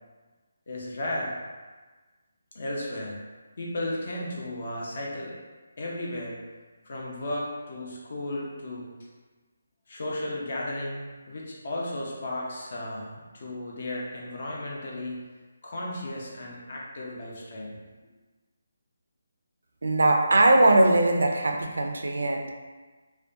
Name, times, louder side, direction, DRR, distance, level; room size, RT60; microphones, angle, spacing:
voice 1, 0.7-1.3 2.5-3.3 3.6-5.4 5.8-6.4 6.8-8.9 9.9-11.0 11.3-15.3 15.6-17.8, left 1 dB, 50° left, -3 dB, 0.5 m, -34 dB
voice 2, 19.8-22.5, right 2 dB, 80° right, 3 dB, 0.3 m, -21 dB
2.4 x 2.1 x 2.4 m, 1.3 s
hypercardioid pair, 170°, 0 cm